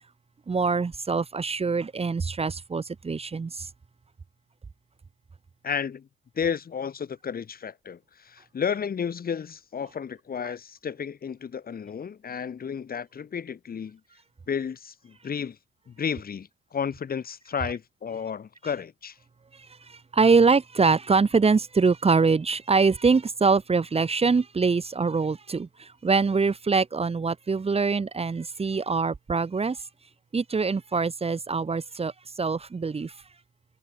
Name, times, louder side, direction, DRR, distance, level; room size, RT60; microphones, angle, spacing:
voice 1, 0.5-3.7 19.5-29.8 30.3-33.1, right 4 dB, 30° right, 2.4 m, -24 dB
voice 2, 5.6-6.1 6.3-14.0 14.5-15.6 15.9-19.2, left 7 dB, 50° left, 7.5 m, -32 dB
cardioid pair, 90°, 20 cm